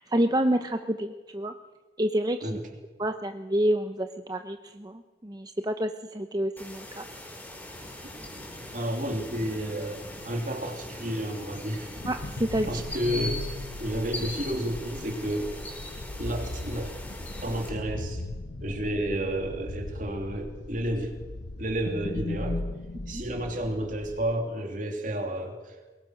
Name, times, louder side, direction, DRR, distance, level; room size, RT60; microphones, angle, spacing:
voice 1, 0.0-1.5 2.0-2.6 3.0-7.0 12.1-12.8 23.1-23.2, right 1 dB, 20° right, 7 dB, 0.8 m, -28 dB
sound 1, 6.6-17.7, left 1 dB, 10° left, 4.8 m, -41 dB
voice 2, 8.7-11.9 12.7-13.4 13.8-15.5 16.2-16.9 17.4-18.2 18.6-21.1 21.6-22.6 23.1-25.8, right 1 dB, 45° right, 4 dB, 3.0 m, -31 dB
sound 2, 12.0-24.3, left 2 dB, 75° left, 1.0 m, -38 dB
23.0 x 21.5 x 6.4 m, 1.3 s
head